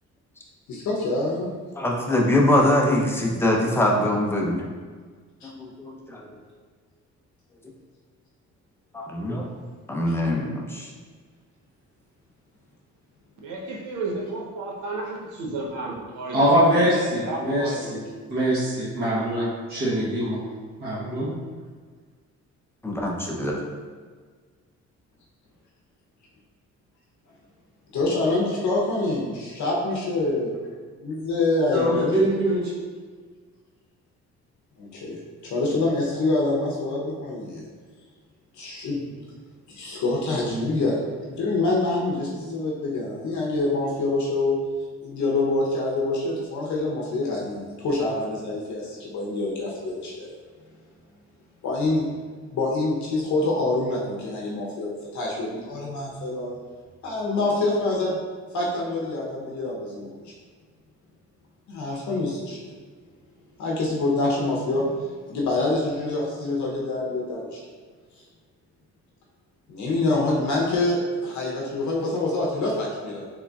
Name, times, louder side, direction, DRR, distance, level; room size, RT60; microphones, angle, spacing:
voice 1, 0.7-1.5 5.4-5.5 27.9-30.5 31.0-32.2 34.8-37.7 38.6-39.1 39.7-41.0 41.4-44.6 45.0-50.3 51.6-52.1 52.5-56.6 57.0-58.2 58.5-60.3 61.7-62.7 63.6-67.6 69.7-73.2, left 2 dB, 70° left, -3 dB, 0.7 m, -26 dB
voice 2, 1.8-4.6 5.4-6.4 8.9-9.5 9.9-10.9 22.8-23.6 31.8-32.0, left 1 dB, 10° left, -1 dB, 0.5 m, -23 dB
voice 3, 13.4-17.9, right 2 dB, 80° right, -2 dB, 0.8 m, -33 dB
voice 4, 16.3-18.0 18.3-20.4 20.8-21.3 31.7-32.7, equal, 35° right, -8 dB, 1.0 m, -23 dB
3.8 x 3.1 x 2.3 m, 1.5 s
cardioid pair, 90°, 30 cm